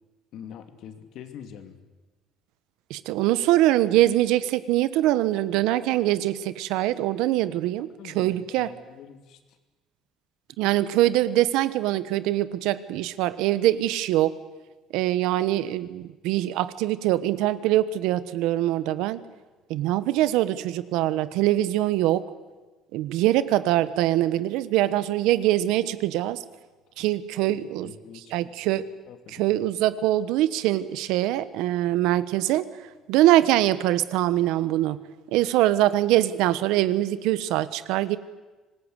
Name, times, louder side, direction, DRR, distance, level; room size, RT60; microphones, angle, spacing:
voice 1, 0.3-1.8 8.0-9.4 27.5-29.6, left 8 dB, 60° left, 7 dB, 2.6 m, -45 dB
voice 2, 2.9-7.9 8.1-8.7 10.6-14.4 14.9-19.2 19.7-22.2 22.9-26.4 27.0-27.9 28.3-28.9 29.3-32.7 33.1-35.0 35.3-38.2, right 14 dB, 85° right, 15 dB, 1.1 m, -23 dB
26.0 x 19.5 x 8.1 m, 1.2 s
cardioid pair, 155°, 0 cm